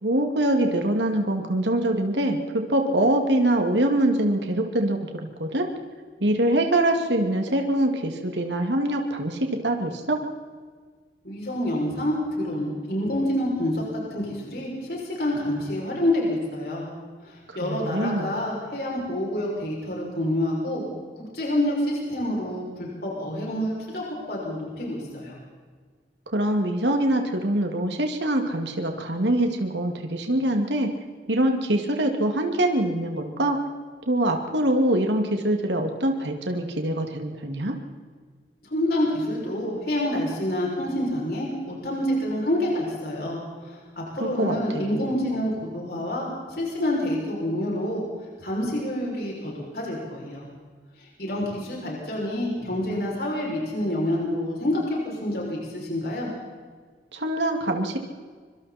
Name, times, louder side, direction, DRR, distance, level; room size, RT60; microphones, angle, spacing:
voice 1, 0.0-5.7 6.2-10.2 17.5-18.4 26.3-30.9 31.3-33.6 34.1-37.8 44.2-45.0 57.1-58.0, right 1 dB, 90° right, 4 dB, 2.4 m, -24 dB
voice 2, 11.2-13.8 14.1-16.9 17.2-20.8 21.2-25.4 38.7-48.0 48.4-50.4 51.0-56.3, left 1 dB, 60° left, -3 dB, 6.7 m, -27 dB
24.5 x 24.5 x 4.4 m, 1.5 s
head